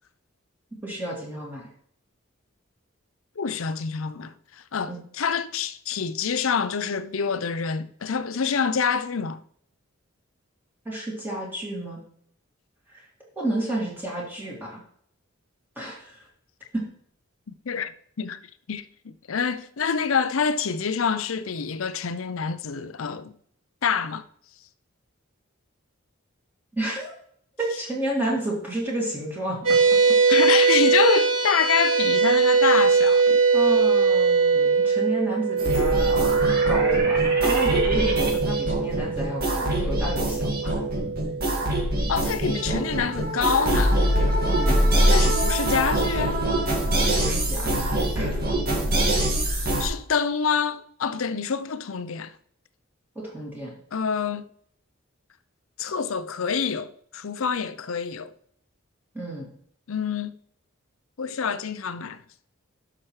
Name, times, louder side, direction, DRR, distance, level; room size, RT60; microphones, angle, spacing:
voice 1, 0.8-1.6 4.9-5.0 10.8-12.0 12.9-13.0 13.4-14.8 15.8-16.2 16.7-16.8 26.7-27.1 27.6-29.6 32.6-32.9 33.5-36.2 36.6-40.8 44.5-44.9 47.0-48.4 53.1-53.7 59.1-59.5, right 1 dB, 10° right, 2.6 m, -31 dB
voice 2, 3.4-9.4 17.7-17.9 18.2-18.4 18.7-23.3 23.8-24.2 30.3-33.4 42.1-44.0 45.1-46.4 49.5-52.3 53.9-54.4 55.8-58.3 59.9-60.3 61.2-62.2, left 6 dB, 75° left, 0.6 m, -26 dB
sound 1, 29.6-42.3, right 5 dB, 80° right, 2.6 m, -21 dB
sound 2, 35.6-49.9, right 1 dB, 45° right, 1.8 m, -24 dB
12.0 x 6.0 x 3.3 m
head